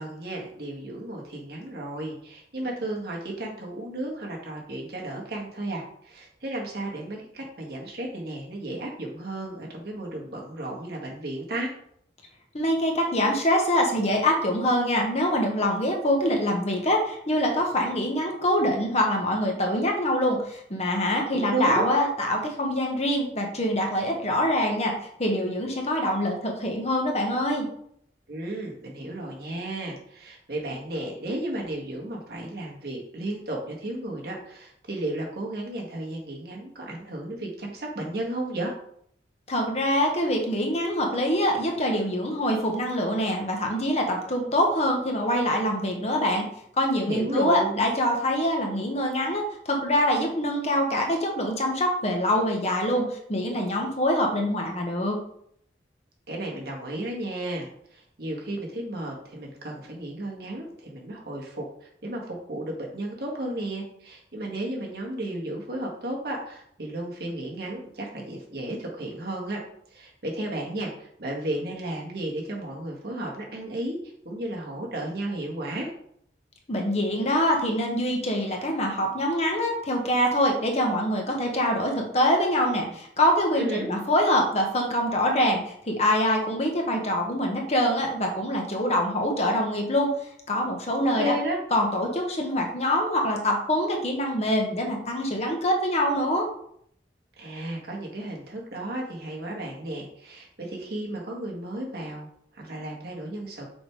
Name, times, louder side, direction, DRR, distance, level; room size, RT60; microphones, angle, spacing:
voice 1, 0.0-11.7 21.3-21.9 28.3-38.7 47.0-47.8 56.3-69.6 69.9-74.0 74.3-75.9 83.6-83.9 91.0-91.6 97.4-103.7, right 1 dB, 60° right, -2 dB, 1.7 m, -33 dB
voice 2, 12.5-24.9 25.2-27.7 39.5-46.4 46.8-55.2 76.7-90.1 90.5-91.3 91.7-96.5, left 1 dB, 40° left, 1 dB, 1.2 m, -24 dB
6.3 x 3.6 x 4.8 m, 0.67 s
head